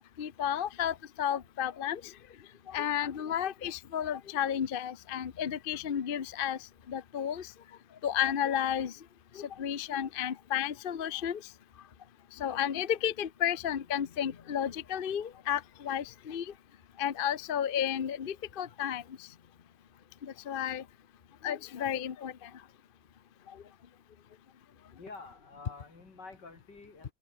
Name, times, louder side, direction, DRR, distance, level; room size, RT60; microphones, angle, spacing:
voice 1, 0.2-2.0 2.7-6.6 6.9-7.5 8.0-8.9 9.3-11.4 12.4-16.5 17.0-19.0 20.2-20.8 21.4-22.5, left 9 dB, 40° left, 0.8 m, -32 dB
voice 2, 25.0-27.1, left 3 dB, 80° left, 4.8 m, -48 dB
open air
omnidirectional pair, 1.8 m